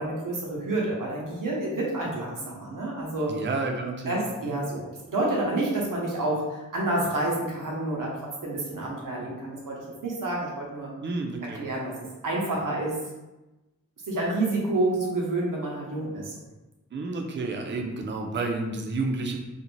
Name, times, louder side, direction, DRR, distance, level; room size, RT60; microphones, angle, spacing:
voice 1, 0.0-3.3 4.1-10.9 11.6-11.9 12.2-13.0 14.1-16.3, right 2 dB, 90° right, -3 dB, 0.7 m, -29 dB
voice 2, 3.3-4.1 4.5-4.6 11.0-11.6 16.9-19.4, right 3 dB, 35° right, 2 dB, 0.4 m, -30 dB
2.6 x 2.1 x 3.0 m, 1.0 s
wide cardioid pair, 65°, 31 cm